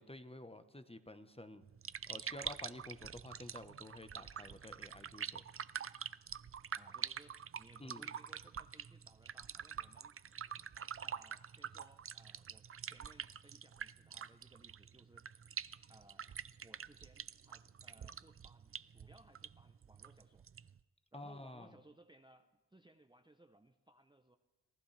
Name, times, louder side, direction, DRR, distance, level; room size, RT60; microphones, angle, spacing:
voice 1, 0.0-1.6 2.1-5.4 7.8-8.0 21.1-21.8, left 1 dB, 15° left, 10 dB, 1.1 m, -51 dB
sound 1, 1.6-20.8, right 8 dB, 35° right, 0.4 m, -46 dB
voice 2, 6.8-10.1 11.0-15.2 15.9-16.3 16.6-20.5 21.1-24.4, right 1 dB, 10° right, 7 dB, 0.8 m, -64 dB
26.5 x 16.0 x 3.4 m, 1.2 s
cardioid pair, 55°, 43 cm